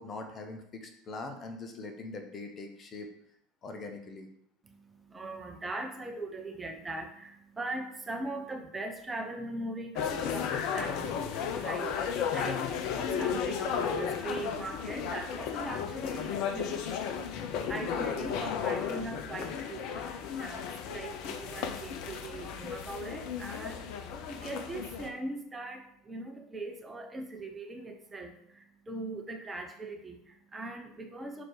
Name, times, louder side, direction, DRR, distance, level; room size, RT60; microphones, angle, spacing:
voice 1, 0.0-3.1 3.6-4.3, left 3 dB, 30° left, 5 dB, 1.1 m, -42 dB
voice 2, 4.6-31.4, right 2 dB, 15° right, 4 dB, 1.1 m, -41 dB
sound 1, 10.0-25.1, left 7 dB, 55° left, 0.8 m, -34 dB
6.1 x 4.6 x 4.8 m, 0.71 s
figure-of-eight pair, 70°, 0 cm